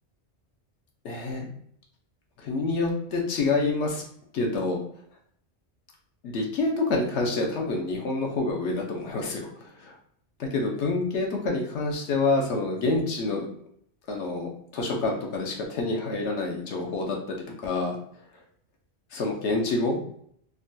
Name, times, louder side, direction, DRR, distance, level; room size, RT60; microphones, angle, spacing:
voice 1, 1.0-1.5 2.4-4.0 4.3-4.8 6.2-9.9 10.4-13.5 14.1-17.4 17.6-18.0 19.1-20.0, left 3 dB, 80° left, 0 dB, 0.9 m, -27 dB
3.7 x 2.2 x 2.6 m, 0.66 s
omnidirectional pair, 1.2 m